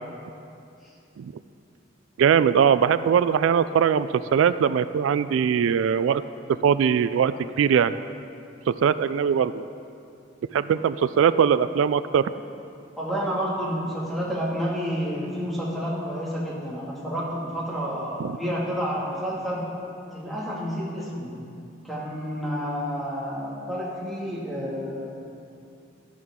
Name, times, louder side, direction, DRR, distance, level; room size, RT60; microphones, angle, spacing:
voice 1, 2.2-6.2 6.6-8.0 8.7-9.6 10.5-12.3 18.2-18.3, right 7 dB, 90° right, 14 dB, 0.3 m, -21 dB
voice 2, 13.0-19.6 20.1-21.3 21.8-25.1, equal, ahead, -6 dB, 2.1 m, -29 dB
12.5 x 11.5 x 3.7 m, 2.5 s
head